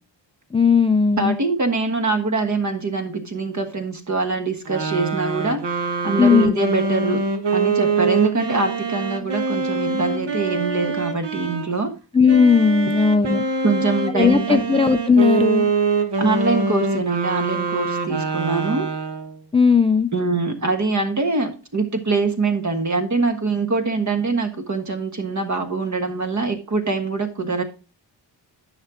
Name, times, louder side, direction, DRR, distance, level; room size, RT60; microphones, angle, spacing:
voice 1, 0.5-1.4 6.2-6.5 12.1-13.4 14.1-15.7 19.5-20.1, left 5 dB, 15° left, 10 dB, 0.4 m, -16 dB
voice 2, 1.2-5.6 6.0-7.2 7.5-11.9 13.6-14.6 16.2-18.9 20.1-27.6, right 3 dB, 40° right, 6 dB, 1.4 m, -23 dB
sound 1, 4.6-11.7 12.3-19.4, right 4 dB, 65° right, 1.4 m, -24 dB
9.9 x 6.4 x 3.7 m, 0.33 s
wide cardioid pair, 120°, 45 cm